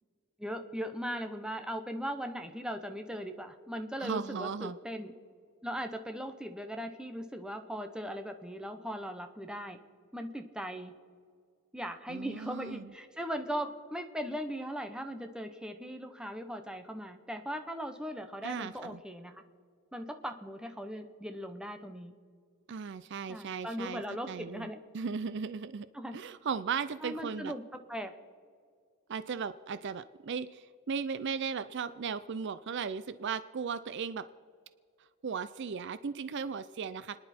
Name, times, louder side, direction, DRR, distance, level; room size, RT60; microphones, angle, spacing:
voice 1, 0.4-5.1 5.6-9.8 10.1-10.9 11.7-19.4 19.9-22.1 23.3-24.8 25.9-26.2 27.0-27.6 27.9-28.1, equal, 5° right, 6 dB, 0.9 m, -39 dB
voice 2, 4.0-4.7 12.1-12.9 18.4-19.0 22.7-24.7 24.9-25.9 26.1-27.5 29.1-34.3 35.2-37.2, right 6 dB, 55° right, 14 dB, 0.4 m, -36 dB
30.0 x 10.5 x 4.3 m, 2.1 s
head